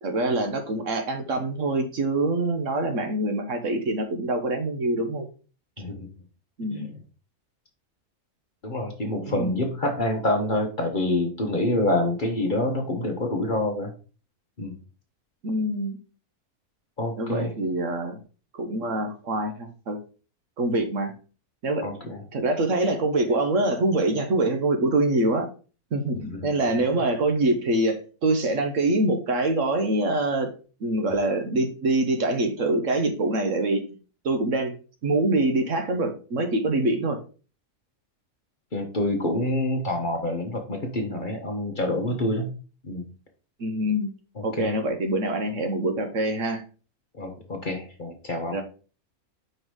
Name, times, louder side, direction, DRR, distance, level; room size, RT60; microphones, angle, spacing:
voice 1, 0.0-5.3 6.6-6.9 9.2-9.6 15.4-16.0 17.2-18.2 18.6-20.0 20.6-21.1 21.6-21.9 22.3-25.5 25.9-30.5 30.8-33.8 34.2-34.7 35.0-37.2 43.6-44.1 44.4-46.6 48.5-48.6, right 2 dB, 60° right, 6 dB, 1.2 m, -25 dB
voice 2, 5.8-6.1 6.7-6.9 8.6-13.9 14.6-14.7 17.0-17.5 21.8-22.2 26.1-26.6 38.7-42.5 42.8-43.1 44.4-44.7 47.2-48.6, left 1 dB, 35° left, 2 dB, 1.0 m, -27 dB
5.3 x 3.9 x 4.7 m, 0.36 s
omnidirectional pair, 1.6 m